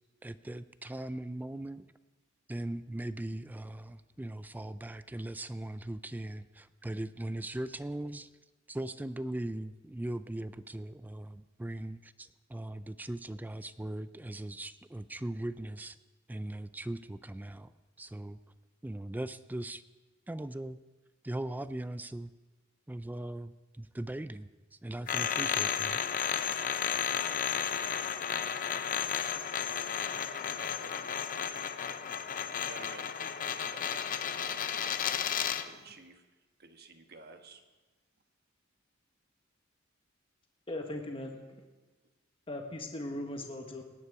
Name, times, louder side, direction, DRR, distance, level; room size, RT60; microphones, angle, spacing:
voice 1, 0.2-1.8 2.5-8.3 8.7-16.0 16.3-17.7 18.0-18.4 18.8-19.8 20.3-20.8 21.2-22.3 22.9-24.5 24.8-26.0, right 1 dB, 10° right, 14 dB, 0.3 m, -39 dB
sound 1, 25.1-35.7, left 8 dB, 45° left, 0.6 m, -33 dB
voice 2, 30.5-32.0 32.6-35.2 35.6-36.2 36.6-37.6, right 3 dB, 50° right, 6 dB, 1.2 m, -53 dB
voice 3, 40.7-41.4 42.5-43.8, left 1 dB, 30° left, 2 dB, 1.3 m, -38 dB
18.0 x 9.7 x 4.8 m, 1.2 s
head